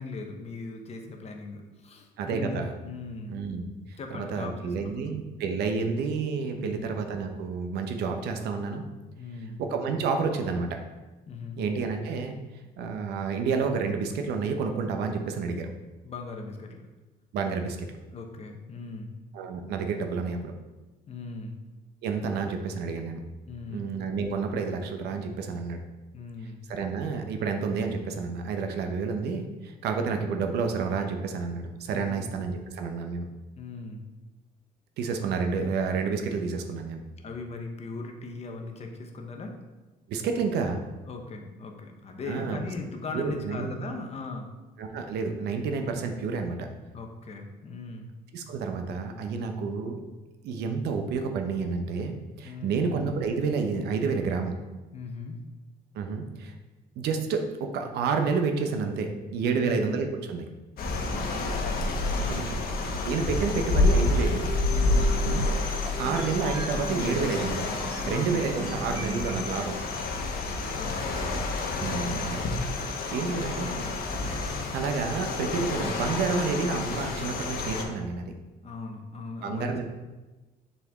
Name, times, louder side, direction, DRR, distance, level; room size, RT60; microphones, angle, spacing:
voice 1, 0.0-3.4 4.0-5.1 6.6-7.0 9.2-9.6 11.3-11.6 16.0-16.8 18.1-19.2 21.1-21.6 23.5-23.9 26.1-26.6 31.9-32.3 33.6-34.1 37.2-39.6 41.1-44.5 46.9-48.2 52.4-53.0 54.9-55.4 59.4-59.8 61.0-61.3 62.1-62.7 64.7-65.2 68.0-68.5 70.3-71.0 71.8-72.4 78.6-79.8, left 3 dB, 40° left, 3 dB, 1.0 m, -39 dB
voice 2, 2.2-2.7 3.3-3.6 4.1-8.8 9.6-10.8 11.6-12.3 12.8-15.7 17.3-17.9 19.3-20.5 22.0-23.2 23.7-25.8 26.7-33.3 35.0-37.0 40.1-40.8 42.3-42.6 43.1-43.7 44.8-46.7 48.3-50.0 50.4-54.6 55.9-56.5 57.0-60.5 62.3-62.4 63.0-64.5 65.2-65.4 65.8-67.7 68.1-69.8 71.8-72.4 73.1-73.8 74.7-78.3 79.4-79.8, right 5 dB, 75° right, 5 dB, 0.8 m, -29 dB
sound 1, 60.8-77.8, left 2 dB, 60° left, 1.1 m, -29 dB
sound 2, 63.2-70.3, equal, 30° right, 1.2 m, -39 dB
6.8 x 4.4 x 3.6 m, 1.2 s
cardioid pair, 110°, 17 cm